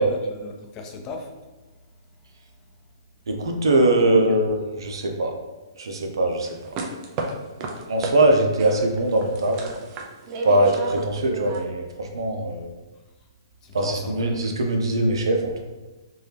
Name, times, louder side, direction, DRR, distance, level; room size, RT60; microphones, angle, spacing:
voice 1, 0.0-1.4 4.0-4.3 13.6-14.4, left 3 dB, 25° left, 3 dB, 0.5 m, -38 dB
voice 2, 3.3-5.3 5.8-6.5 7.9-9.6 10.4-12.7 13.7-15.7, right 1 dB, 85° right, 3 dB, 0.7 m, -21 dB
sound 1, 6.4-8.2 8.6-11.6, right 3 dB, 30° right, 0.5 m, -33 dB
3.6 x 2.8 x 3.3 m, 1.2 s
hypercardioid pair, 155°, 2 cm